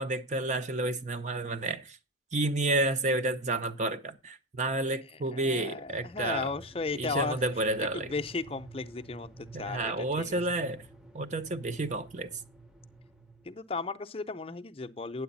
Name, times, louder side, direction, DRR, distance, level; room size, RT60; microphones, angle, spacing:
voice 1, 0.0-2.0 2.3-6.5 6.9-8.1 9.5-10.8 11.1-12.3, right 2 dB, 40° right, 0.7 m, -30 dB
voice 2, 5.3-7.4 7.8-10.4 13.4-15.2, left 4 dB, 30° left, 0.6 m, -35 dB
sound 1, 5.9-13.7, right 2 dB, 5° right, 0.7 m, -50 dB
9.5 x 7.7 x 4.0 m
head